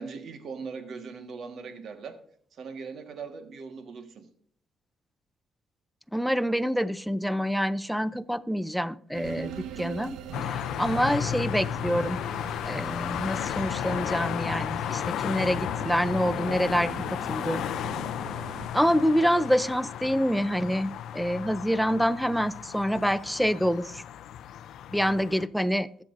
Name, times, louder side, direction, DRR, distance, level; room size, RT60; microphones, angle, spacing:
voice 1, 0.0-2.2 2.6-4.3, right 5 dB, 65° right, 1.5 m, -40 dB
voice 2, 6.1-10.2 10.4-12.2 12.7-17.6 18.7-24.0 24.9-25.9, equal, ahead, 0.5 m, -26 dB
sound 1, 9.1-18.7, right 8 dB, 85° right, 1.0 m, -42 dB
sound 2, 10.3-25.5, left 10 dB, 75° left, 0.4 m, -34 dB
21.0 x 7.4 x 2.6 m
cardioid pair, 90°, 0 cm